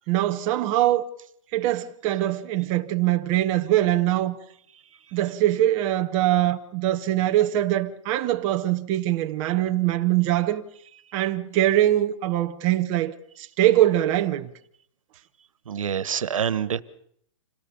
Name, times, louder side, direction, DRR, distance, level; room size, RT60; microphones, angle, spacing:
voice 1, 0.1-1.0 1.5-4.4 5.1-10.6 11.1-14.5, right 14 dB, 20° right, 0.9 m, -23 dB
voice 2, 15.7-16.8, right 8 dB, 85° right, 1.4 m, -26 dB
27.0 x 18.0 x 7.1 m
hypercardioid pair, 175°, 17 cm